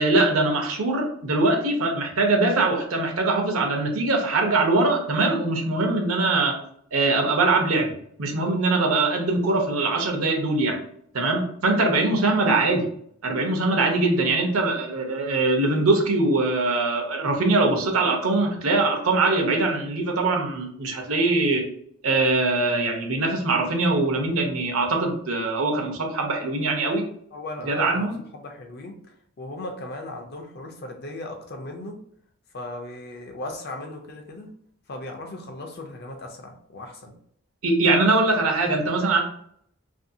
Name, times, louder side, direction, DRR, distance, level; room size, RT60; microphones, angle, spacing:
voice 1, 0.0-6.5 6.9-7.9 8.2-10.8 11.1-12.9 13.2-21.6 22.0-27.0 27.7-28.2 37.6-39.2, right 2 dB, 80° right, 2 dB, 0.7 m, -22 dB
voice 2, 27.3-29.0 29.4-32.0 32.5-34.5 34.9-37.2, left 2 dB, 45° left, 4 dB, 0.4 m, -37 dB
2.6 x 2.6 x 2.6 m, 0.66 s
head